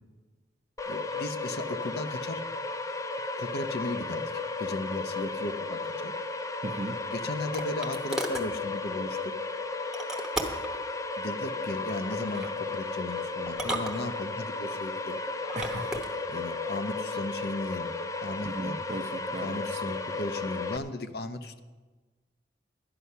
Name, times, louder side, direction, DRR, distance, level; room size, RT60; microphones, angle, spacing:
sound 1, 0.8-20.8, left 3 dB, 20° left, 0.4 m, -34 dB
voice 1, 0.9-2.4 3.4-6.1 7.1-9.3 11.2-15.2 16.3-17.9 18.2-18.8 19.4-21.6, left 1 dB, 60° left, 10 dB, 0.7 m, -36 dB
voice 2, 6.6-7.0 15.6-16.0 18.4-19.8, right 2 dB, 40° right, 6 dB, 0.6 m, -37 dB
sound 2, 6.7-8.5 9.9-10.8 12.1-12.5 13.5-14.5 15.3-16.1, right 1 dB, 5° right, 0.9 m, -36 dB
12.5 x 9.9 x 5.6 m, 1.3 s
head